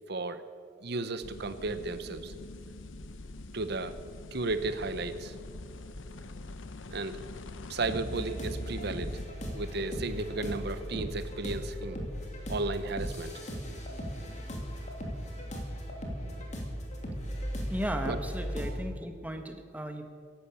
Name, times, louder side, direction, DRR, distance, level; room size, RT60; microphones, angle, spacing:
voice 1, 0.1-0.4 0.8-2.3 3.5-4.0 4.3-5.3 6.9-7.2 7.7-9.2 9.5-12.0 12.5-13.4 16.2-16.5 18.1-18.2, right 3 dB, 60° right, 12 dB, 0.9 m, -34 dB
sound 1, 1.2-9.3, left 2 dB, 80° left, 0.8 m, -44 dB
sound 2, 7.9-18.8, equal, 40° left, 2.8 m, -37 dB
voice 2, 17.7-20.1, equal, 10° right, 6 dB, 1.2 m, -36 dB
16.5 x 11.5 x 7.1 m, 2.2 s
head